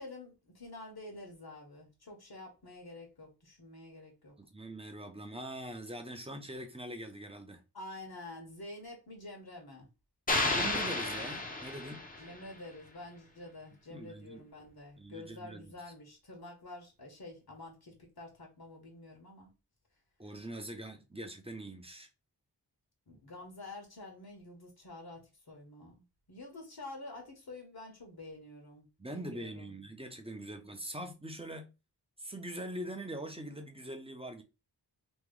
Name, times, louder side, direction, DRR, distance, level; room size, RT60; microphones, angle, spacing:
voice 1, 0.0-4.3 7.7-9.9 12.2-19.5 23.1-29.8, left 2 dB, 60° left, 1.4 m, -48 dB
voice 2, 4.4-7.6 10.4-12.0 13.9-14.4 15.0-15.7 20.2-22.1 29.0-31.7 32.2-34.4, right 1 dB, 15° right, 0.8 m, -43 dB
sound 1, 10.3-12.4, left 2 dB, 20° left, 0.8 m, -32 dB
3.1 x 2.4 x 3.8 m
wide cardioid pair, 70°, 42 cm